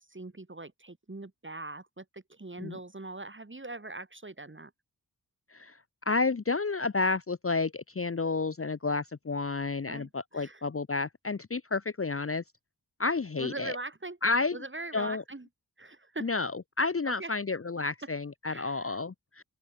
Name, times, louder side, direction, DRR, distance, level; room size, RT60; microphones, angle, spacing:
voice 1, 0.0-4.7 9.9-10.6 13.4-14.2 14.5-15.5 15.8-16.3 17.0-17.3 18.0-18.1 18.4-19.0, right 2 dB, 30° right, 2.2 m, -42 dB
voice 2, 6.1-12.4 13.0-13.8 14.2-14.6 14.9-15.2 16.2-19.4, left 3 dB, 35° left, 0.7 m, -30 dB
open air
wide cardioid pair, 70°, 40 cm